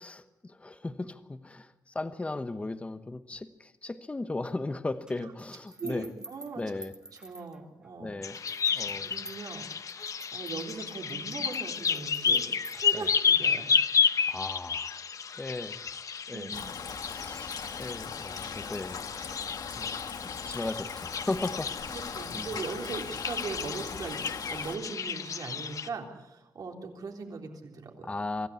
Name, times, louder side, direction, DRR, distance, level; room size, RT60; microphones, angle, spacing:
voice 1, 0.0-6.1 6.5-6.9 8.0-8.4 8.7-9.1 12.9-13.1 14.3-15.0 15.3-16.7 17.0-19.3 19.8-19.9 20.2-22.0 22.3-22.5 28.0-28.5, left 2 dB, 20° left, 1.0 m, -37 dB
sound 1, 5.1-7.9 8.3-13.5, right 1 dB, 10° right, 1.1 m, -50 dB
voice 2, 5.8-6.6 7.2-8.1 8.7-9.7 10.1-12.4 12.7-13.7 16.3-16.6 21.9-28.1, right 4 dB, 65° right, 3.5 m, -40 dB
sound 2, 8.2-25.9, left 6 dB, 50° left, 0.8 m, -31 dB
Rain, 16.5-24.8, left 6 dB, 75° left, 1.7 m, -40 dB
25.5 x 16.0 x 8.4 m
wide cardioid pair, 160°, 7 cm